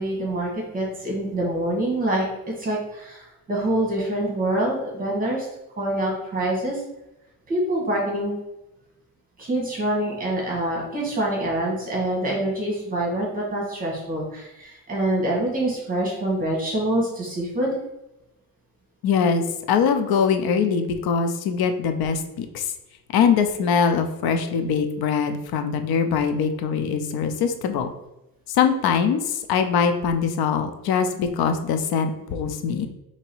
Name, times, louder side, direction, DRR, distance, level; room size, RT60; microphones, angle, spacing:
voice 1, 0.0-2.3 2.6-5.5 5.8-6.8 7.5-8.4 9.4-17.7, right 1 dB, 25° right, -2 dB, 1.4 m, -25 dB
voice 2, 19.0-22.7 23.1-27.9 28.5-32.9, left 6 dB, 85° left, 7 dB, 0.6 m, -22 dB
3.8 x 2.9 x 4.4 m, 0.90 s
cardioid pair, 165°, 36 cm